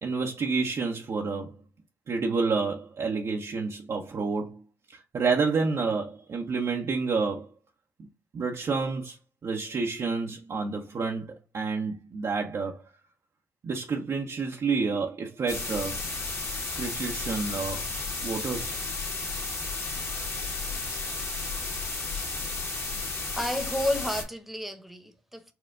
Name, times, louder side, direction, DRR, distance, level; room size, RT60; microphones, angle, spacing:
voice 1, 0.0-1.6 2.1-4.6 4.9-7.5 8.0-8.1 8.3-9.2 9.4-12.8 13.6-16.0 16.7-17.9 18.2-18.8, right 4 dB, 55° right, 0.7 m, -29 dB
sound 1, 15.5-24.2, left 3 dB, 45° left, 1.5 m, -33 dB
voice 2, 23.3-25.5, left 1 dB, ahead, 1.0 m, -31 dB
4.4 x 2.2 x 3.6 m
hypercardioid pair, 45°, 6 cm